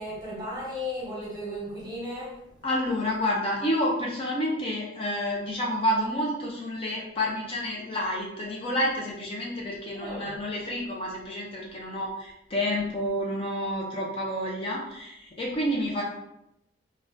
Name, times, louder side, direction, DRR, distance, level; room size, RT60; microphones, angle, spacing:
voice 1, 0.0-2.3 9.9-10.4, left 1 dB, 20° right, -6 dB, 1.1 m, -35 dB
voice 2, 2.6-16.0, equal, 30° left, -3 dB, 0.4 m, -29 dB
3.5 x 2.1 x 2.5 m, 0.84 s
head